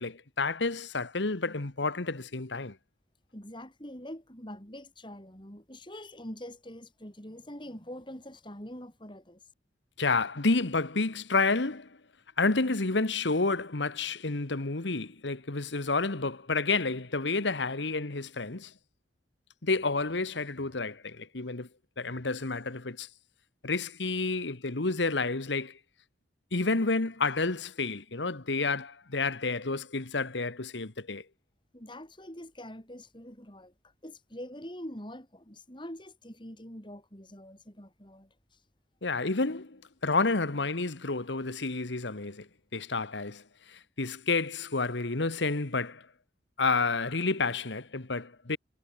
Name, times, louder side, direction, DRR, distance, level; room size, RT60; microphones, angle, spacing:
voice 1, 0.0-2.8 10.0-12.0 12.4-18.7 19.6-21.7 22.0-23.1 23.6-25.8 26.5-31.2 39.0-46.1 46.6-48.6, left 3 dB, 80° left, 1.5 m, -30 dB
voice 2, 3.3-9.4 31.7-33.7 34.0-38.3, left 1 dB, 25° left, 7.7 m, -44 dB
head